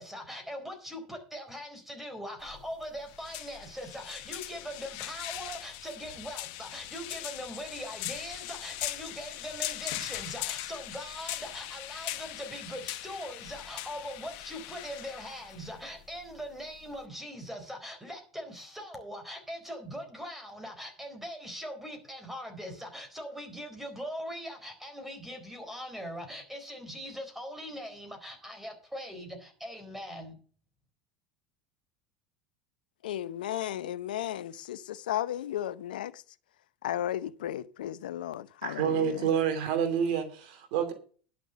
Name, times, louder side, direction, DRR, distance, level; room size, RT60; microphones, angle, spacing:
voice 1, 0.0-30.4, equal, 5° right, 4.1 m, -41 dB
sound 1, 2.4-17.1, left 15 dB, 65° left, 1.1 m, -40 dB
voice 2, 33.0-36.2 36.8-39.3, left 12 dB, 85° left, 0.7 m, -34 dB
voice 3, 38.6-40.9, right 8 dB, 70° right, 2.7 m, -28 dB
11.0 x 6.9 x 6.7 m
hypercardioid pair, 90°, 5 cm